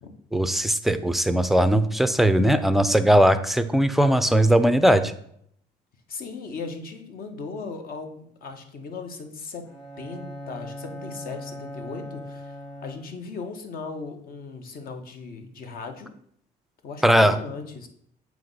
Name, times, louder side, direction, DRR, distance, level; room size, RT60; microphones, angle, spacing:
voice 1, 0.3-5.1 17.0-17.4, right 1 dB, ahead, 11 dB, 0.4 m, -19 dB
voice 2, 6.1-9.7 10.0-16.1 16.8-17.9, left 4 dB, 60° left, 5 dB, 1.1 m, -37 dB
Bowed string instrument, 9.6-13.4, left 1 dB, 35° left, 1.8 m, -39 dB
7.4 x 3.1 x 5.4 m, 0.68 s
cardioid pair, 110°, 17 cm